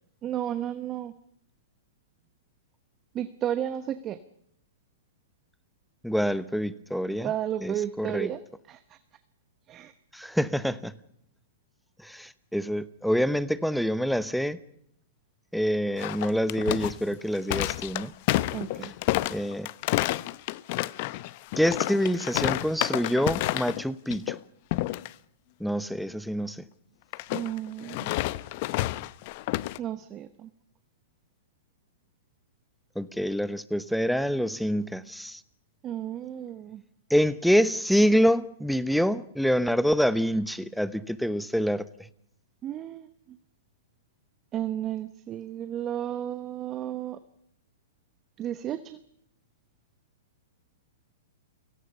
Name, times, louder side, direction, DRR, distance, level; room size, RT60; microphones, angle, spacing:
voice 1, 0.2-1.1 3.1-4.2 7.2-8.4 8.7-9.0 9.7-9.9 18.5-18.9 27.3-28.1 29.8-30.5 35.8-36.8 42.6-43.1 44.5-47.2 48.4-49.0, right 11 dB, 25° right, 1.0 m, -33 dB
voice 2, 6.0-7.3 7.6-8.3 10.1-10.9 12.0-14.6 15.5-18.1 19.3-19.7 21.6-24.4 25.6-26.6 33.0-35.4 37.1-41.8, equal, ahead, 1.0 m, -26 dB
sound 1, 16.0-23.8 24.1-24.4 24.7-25.1 27.1-29.8, left 18 dB, 50° left, 0.7 m, -29 dB
30.0 x 18.0 x 5.6 m
hypercardioid pair, 125°, 0 cm